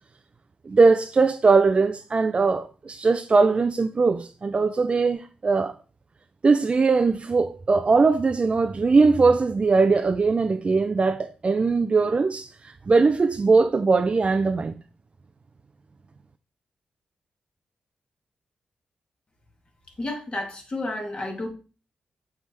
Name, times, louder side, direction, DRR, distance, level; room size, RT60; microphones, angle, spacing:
voice 1, 0.7-5.8 6.4-14.8, right 4 dB, 40° right, 0.4 m, -20 dB
voice 2, 20.0-21.5, left 2 dB, 40° left, 2.0 m, -31 dB
6.1 x 3.5 x 4.3 m
cardioid pair, 55°, 3 cm